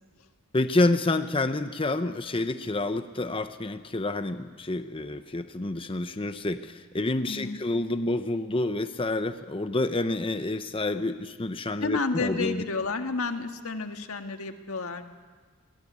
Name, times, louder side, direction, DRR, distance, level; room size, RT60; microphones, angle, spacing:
voice 1, 0.5-12.6, left 2 dB, 25° left, 10 dB, 0.8 m, -28 dB
voice 2, 7.3-7.6 11.8-15.0, left 3 dB, 90° left, 6 dB, 1.7 m, -31 dB
23.5 x 18.5 x 9.6 m, 1.5 s
head